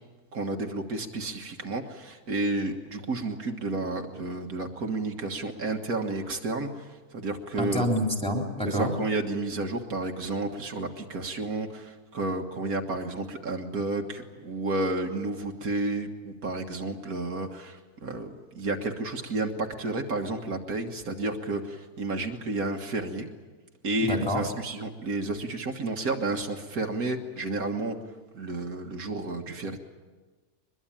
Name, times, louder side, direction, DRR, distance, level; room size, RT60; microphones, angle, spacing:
voice 1, 0.3-7.8 8.7-23.3 23.8-28.0 28.3-29.8, right 2 dB, 70° right, 3 dB, 2.0 m, -31 dB
voice 2, 7.6-8.9 24.0-24.4, equal, 5° left, 1 dB, 3.7 m, -27 dB
23.5 x 21.5 x 8.9 m, 1.3 s
omnidirectional pair, 1.6 m